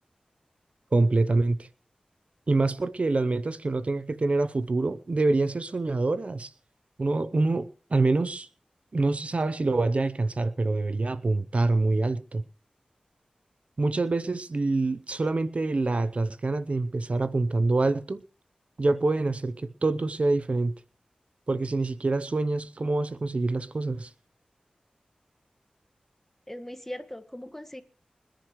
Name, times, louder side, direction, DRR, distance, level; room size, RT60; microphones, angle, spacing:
voice 1, 0.9-1.7 2.5-6.5 7.0-8.5 8.9-12.4 13.8-18.2 18.8-20.7 21.5-24.1, right 3 dB, 55° right, 0.8 m, -26 dB
voice 2, 26.5-27.8, left 1 dB, 10° left, 1.7 m, -39 dB
25.5 x 10.5 x 3.2 m
cardioid pair, 50°, 3 cm